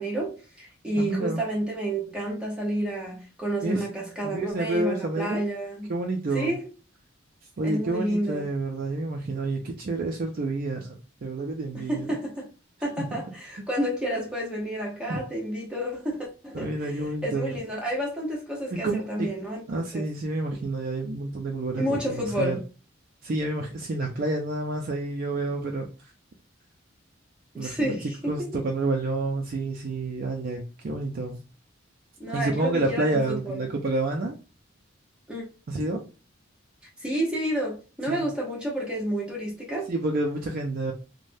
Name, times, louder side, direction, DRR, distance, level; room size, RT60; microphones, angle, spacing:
voice 1, 0.0-5.9 6.3-6.6 7.6-8.5 11.7-12.5 12.8-19.6 19.9-20.1 21.8-22.7 27.5-28.6 32.2-33.6 35.3-35.4 37.0-39.9, right 1 dB, 5° right, 0.9 m, -30 dB
voice 2, 1.0-1.4 3.6-3.9 4.2-5.4 5.9-6.5 7.6-12.1 13.0-13.2 13.6-13.7 15.1-15.2 16.5-17.6 18.7-19.3 19.7-22.6 23.2-26.1 27.6-27.9 28.3-31.4 32.3-34.4 35.7-36.0 38.1-38.3 39.9-40.9, right 2 dB, 45° right, 0.4 m, -29 dB
3.2 x 2.1 x 2.6 m
head